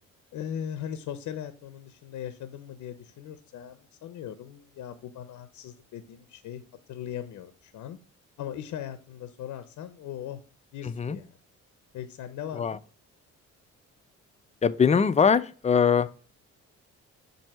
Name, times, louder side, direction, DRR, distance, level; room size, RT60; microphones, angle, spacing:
voice 1, 0.3-6.6 6.9-8.0 8.4-10.4 10.7-11.3 11.9-12.8, left 9 dB, 75° left, 0.7 m, -39 dB
voice 2, 10.8-11.2 12.5-12.8 14.6-16.1, left 6 dB, 25° left, 0.4 m, -22 dB
7.4 x 2.8 x 5.5 m
cardioid pair, 90°, 30 cm